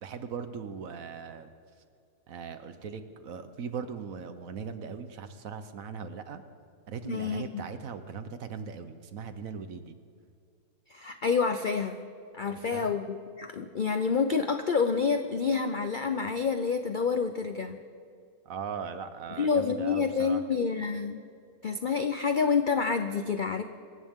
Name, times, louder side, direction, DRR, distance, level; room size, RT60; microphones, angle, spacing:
voice 1, 0.0-1.5 2.3-6.4 6.9-9.9 12.5-13.0 18.4-20.4, right 6 dB, 60° right, 10 dB, 1.2 m, -39 dB
voice 2, 7.0-7.6 10.9-12.0 12.3-17.8 19.4-21.2 21.6-23.6, left 5 dB, 70° left, 8 dB, 0.4 m, -28 dB
26.0 x 14.5 x 3.7 m, 2.3 s
omnidirectional pair, 1.7 m